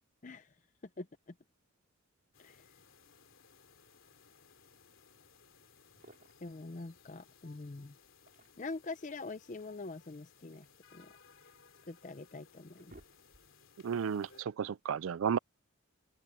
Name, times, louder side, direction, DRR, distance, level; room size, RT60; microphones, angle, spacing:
voice 1, 0.2-0.5 1.0-1.3 2.4-2.7 6.4-7.9 8.6-10.7 10.9-11.1 11.9-13.0, left 3 dB, 35° left, 0.6 m, -44 dB
sound 1, 2.3-14.4, left 5 dB, 70° left, 3.0 m, -62 dB
sound 2, 5.8-6.6 8.0-8.9 10.1-11.5 12.1-12.2 12.5-13.7, right 1 dB, 45° right, 5.3 m, -61 dB
voice 2, 13.8-15.4, right 7 dB, 70° right, 0.4 m, -33 dB
open air
head